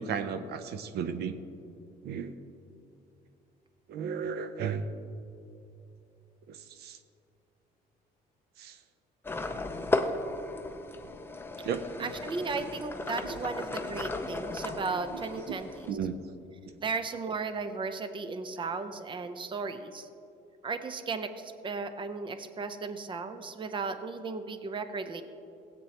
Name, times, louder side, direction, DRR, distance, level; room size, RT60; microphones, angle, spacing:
voice 1, 0.0-1.3 2.0-2.3 3.9-4.8 6.5-7.0 8.6-8.8 11.6-12.1 13.3-13.4 15.1-15.2 15.5-15.6 15.9-16.2, right 7 dB, 70° right, 10 dB, 0.6 m, -34 dB
sound 1, 9.2-15.9, left 2 dB, 15° left, 0.6 m, -35 dB
voice 2, 12.0-15.9 16.8-20.1 20.6-25.2, right 4 dB, 30° right, 9 dB, 0.7 m, -35 dB
17.0 x 8.5 x 2.9 m, 2.7 s
cardioid pair, 110°, 17 cm